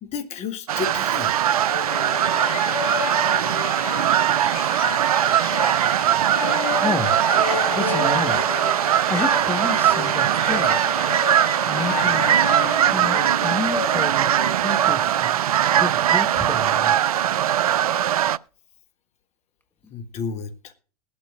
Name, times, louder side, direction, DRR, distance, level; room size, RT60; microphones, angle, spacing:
voice 1, 0.0-1.4 6.2-6.3 19.9-20.7, left 5 dB, 35° left, 1.4 m, -32 dB
sound 1, 0.7-18.4, right 11 dB, 70° right, 0.4 m, -21 dB
sound 2, 1.7-15.2, left 9 dB, 65° left, 0.7 m, -31 dB
voice 2, 6.7-7.2 7.7-8.6 9.1-10.8 11.7-12.3 12.9-14.3 14.6-15.4 15.7-16.9, left 2 dB, 10° left, 1.4 m, -30 dB
21.0 x 8.6 x 2.5 m
figure-of-eight pair, 90°, 19 cm